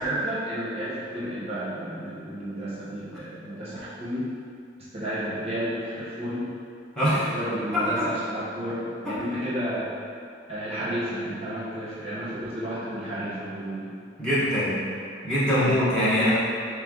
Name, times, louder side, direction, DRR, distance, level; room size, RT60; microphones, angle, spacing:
voice 1, 0.0-4.3 4.9-6.5 7.1-9.9 10.5-13.9 15.6-15.8, equal, 35° right, -9 dB, 0.9 m, -32 dB
voice 2, 6.9-7.3 7.7-8.1 14.2-14.8 15.2-16.3, equal, 5° left, -11 dB, 1.1 m, -23 dB
3.3 x 3.3 x 3.7 m, 2.4 s
head